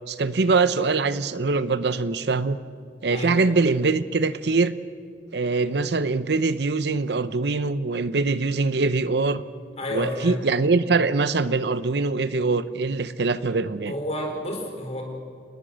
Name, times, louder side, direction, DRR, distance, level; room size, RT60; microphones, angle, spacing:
voice 1, 0.1-2.6 3.0-4.7 5.3-9.4 9.9-13.9, right 3 dB, 65° right, 14 dB, 0.7 m, -23 dB
voice 2, 9.8-10.5 13.9-15.0, left 1 dB, 35° left, 2 dB, 4.5 m, -30 dB
28.0 x 20.0 x 6.4 m, 2.2 s
head